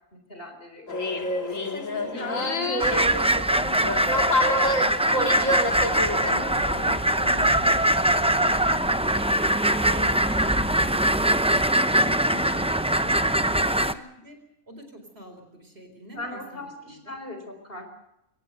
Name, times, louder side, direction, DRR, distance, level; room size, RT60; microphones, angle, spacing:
voice 1, 0.1-0.9 1.9-3.0 4.9-5.6 9.7-10.4 13.4-13.7 16.1-17.9, left 1 dB, 40° left, 6 dB, 4.4 m, -40 dB
sound 1, 0.9-6.9, left 1 dB, 65° left, 2.3 m, -28 dB
voice 2, 1.7-4.9 5.3-5.6 5.9-9.3 9.7-14.4 14.7-17.1, equal, 45° right, 5 dB, 4.6 m, -43 dB
sound 2, 2.8-13.9, right 1 dB, 10° right, 0.4 m, -22 dB
sound 3, 5.6-13.4, equal, 20° left, 5.9 m, -43 dB
24.5 x 17.5 x 7.8 m, 0.82 s
omnidirectional pair, 1.5 m